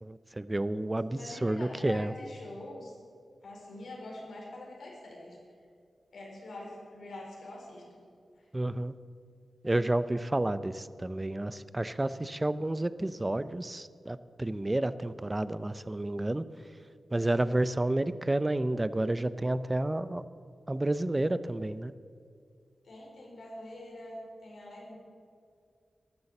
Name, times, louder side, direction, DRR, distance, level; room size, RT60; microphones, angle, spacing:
voice 1, 0.0-2.1 8.5-8.9 9.6-16.4 17.1-20.2 20.7-21.9, right 1 dB, 20° right, 14 dB, 0.5 m, -30 dB
voice 2, 1.1-2.9 3.4-5.4 6.1-8.0 22.8-24.9, left 1 dB, 80° left, -2 dB, 4.5 m, -44 dB
13.0 x 11.5 x 7.1 m, 2.3 s
wide cardioid pair, 85°, 0 cm